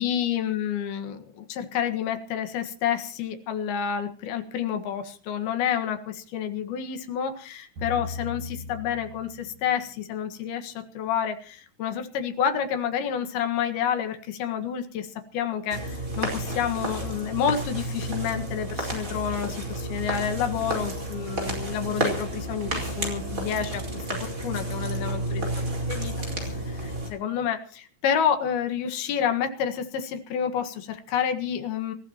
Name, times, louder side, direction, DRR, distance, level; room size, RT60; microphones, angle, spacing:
voice 1, 0.0-25.5 25.9-26.1 26.4-31.9, left 8 dB, 75° left, 7 dB, 3.5 m, -29 dB
sound 1, 7.8-10.0, left 2 dB, 50° right, 7.9 m, -38 dB
sound 2, 15.7-27.1, right 1 dB, 20° right, 4.8 m, -31 dB
27.0 x 15.0 x 3.0 m, 0.41 s
omnidirectional pair, 4.6 m